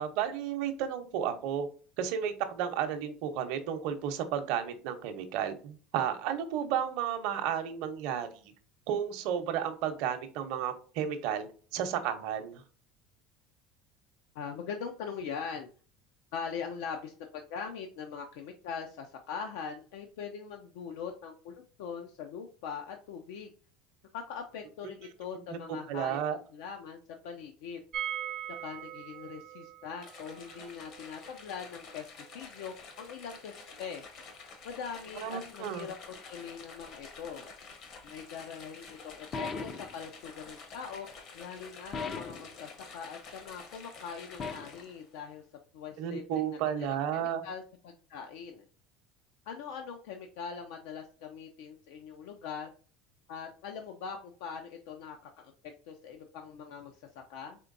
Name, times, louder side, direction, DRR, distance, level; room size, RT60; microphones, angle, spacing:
voice 1, 0.0-1.7 2.0-8.3 8.9-11.5 11.7-12.6 25.5-25.6 25.9-26.4 35.2-35.9 46.0-47.4, right 9 dB, 65° right, 7 dB, 0.7 m, -32 dB
voice 2, 14.3-15.7 16.3-23.5 24.1-26.2 26.5-27.0 27.2-27.8 28.6-34.0 34.6-37.4 38.0-41.1 41.3-45.4 45.7-46.6 46.9-48.6 49.5-52.7 53.3-55.5 55.9-57.0 57.3-57.6, left 6 dB, 80° left, 4 dB, 0.6 m, -42 dB
sound 1, 27.9-33.7 34.0-34.1 34.3-34.4, right 11 dB, 40° right, 0.4 m, -42 dB
sound 2, 30.0-45.1, left 4 dB, 50° left, 1.0 m, -50 dB
sound 3, 39.3-40.0 41.9-42.5 44.4-44.8, left 4 dB, 30° left, 0.4 m, -37 dB
4.4 x 3.4 x 2.6 m, 0.40 s
cardioid pair, 145°, 0 cm